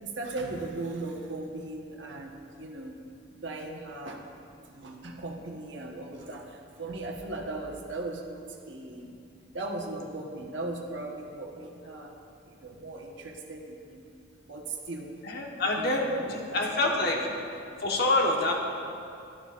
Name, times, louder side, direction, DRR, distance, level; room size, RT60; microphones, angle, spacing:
voice 1, 0.0-3.0 3.4-4.2 4.7-9.1 9.5-12.2 12.5-14.0 14.5-15.1 15.8-16.6 16.9-17.1, right 2 dB, 70° right, 1 dB, 1.1 m, -38 dB
voice 2, 15.2-17.3 17.8-18.6, left 2 dB, 55° left, 0 dB, 1.2 m, -26 dB
12.5 x 12.0 x 2.5 m, 2.5 s
head